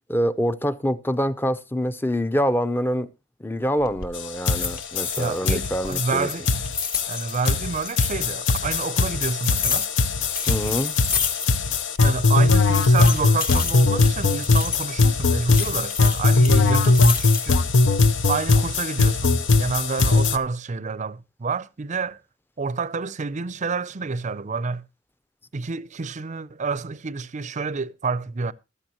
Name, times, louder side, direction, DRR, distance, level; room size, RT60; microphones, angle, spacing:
voice 1, 0.1-3.1 3.4-6.3 10.5-11.0, equal, 10° left, 0.6 m, -25 dB
sound 1, 3.8-4.1 4.5-5.5 5.8-8.1 8.5-11.7 12.0-12.1 12.6-14.9 15.5-17.6 18.1-18.6, left 6 dB, 50° left, 2.2 m, -30 dB
sound 2, 4.1-4.2 4.5-20.4, left 3 dB, 75° left, 0.8 m, -20 dB
voice 2, 5.2-6.7 7.1-9.9 12.0-17.6 18.3-22.2 22.6-24.8 25.5-28.5, right 4 dB, 40° right, 0.5 m, -29 dB
15.0 x 13.0 x 3.0 m
head